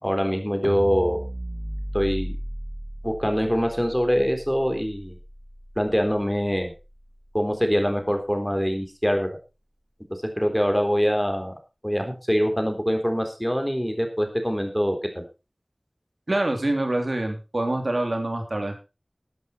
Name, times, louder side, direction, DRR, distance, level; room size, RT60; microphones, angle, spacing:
voice 1, 0.0-1.2 1.9-2.4 3.0-5.2 5.8-6.7 7.3-9.3 10.1-11.6 11.8-15.3, equal, 5° left, 5 dB, 3.9 m, -24 dB
sound 1, 0.6-6.9, equal, 15° right, 2.3 m, -35 dB
voice 2, 16.3-18.7, right 1 dB, 75° right, 4 dB, 3.1 m, -25 dB
13.0 x 11.0 x 4.4 m, 0.30 s
wide cardioid pair, 40°, 0 cm